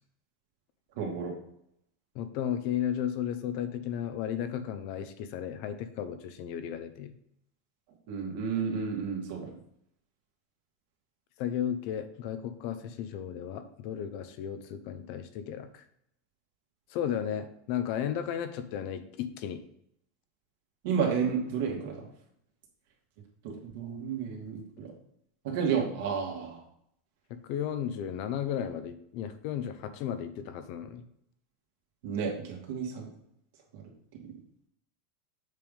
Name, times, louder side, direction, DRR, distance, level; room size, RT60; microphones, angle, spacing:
voice 1, 1.0-1.3 8.1-9.5 20.8-22.1 23.4-24.9 25.4-26.6 32.0-33.1 33.7-33.8, right 6 dB, 60° right, 0 dB, 2.2 m, -31 dB
voice 2, 2.1-7.1 11.4-15.8 16.9-19.6 27.3-31.0, left 9 dB, 50° left, 10 dB, 0.7 m, -34 dB
7.5 x 3.4 x 5.4 m, 0.74 s
supercardioid pair, 160°, 0 cm